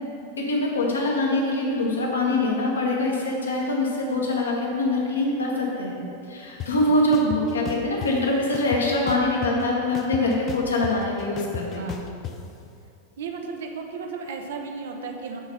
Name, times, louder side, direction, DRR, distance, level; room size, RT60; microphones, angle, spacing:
voice 1, 0.4-6.0 6.3-11.9, left 2 dB, 70° left, -2 dB, 1.1 m, -24 dB
sound 1, 6.6-6.7 7.1-8.1 8.5-9.6 9.9-12.3, left 8 dB, 30° left, 0.5 m, -34 dB
voice 2, 11.6-12.1 13.2-15.4, right 5 dB, 60° right, 3 dB, 0.6 m, -34 dB
6.3 x 4.1 x 5.3 m, 2.6 s
figure-of-eight pair, 90°, 0 cm